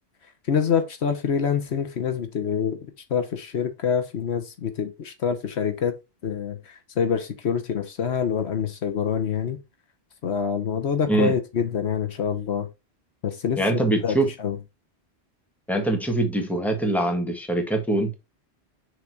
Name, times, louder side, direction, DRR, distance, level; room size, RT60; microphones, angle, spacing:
voice 1, 0.5-2.8 3.1-5.9 6.2-9.6 10.2-12.7 13.2-14.6, left 7 dB, 75° left, 1.2 m, -26 dB
voice 2, 13.6-14.3 15.7-18.1, right 2 dB, ahead, 1.4 m, -23 dB
6.2 x 3.9 x 4.5 m
omnidirectional pair, 1.1 m